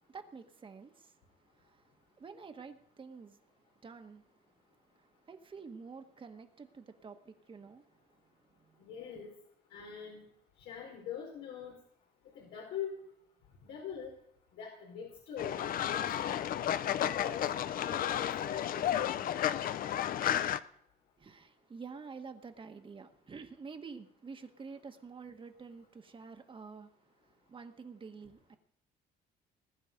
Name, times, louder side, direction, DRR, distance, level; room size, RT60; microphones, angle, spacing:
voice 1, 0.1-1.1 1.5-3.4 3.8-4.2 4.9-7.9 8.5-8.8 21.2-26.9 27.5-28.6, right 5 dB, 30° right, 1.6 m, -49 dB
voice 2, 8.9-9.3 9.7-10.3 10.7-11.7 12.3-12.9 13.6-14.1 14.6-15.6 15.9-16.3 17.0-17.4 17.8-19.2, left 8 dB, 85° left, 4.4 m, -43 dB
Fowl, 15.4-20.6, left 10 dB, 55° left, 0.8 m, -32 dB
20.0 x 11.0 x 5.3 m
cardioid pair, 110°, 17 cm